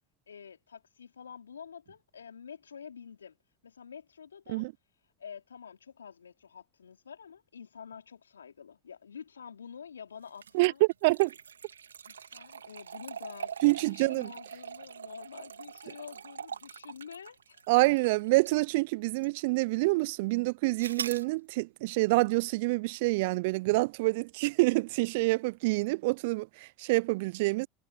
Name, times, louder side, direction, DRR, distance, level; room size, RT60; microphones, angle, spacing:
voice 1, 0.3-3.4 3.6-4.7 5.2-10.8 12.0-17.6, left 7 dB, 80° left, 3.7 m, -48 dB
sound 1, 10.3-18.7 19.2-19.3 20.8-21.3, right 7 dB, 80° right, 3.2 m, -43 dB
voice 2, 10.5-11.3 13.6-14.3 17.7-27.7, right 23 dB, 60° right, 0.4 m, -27 dB
figure-of-eight pair, 75°, 0 cm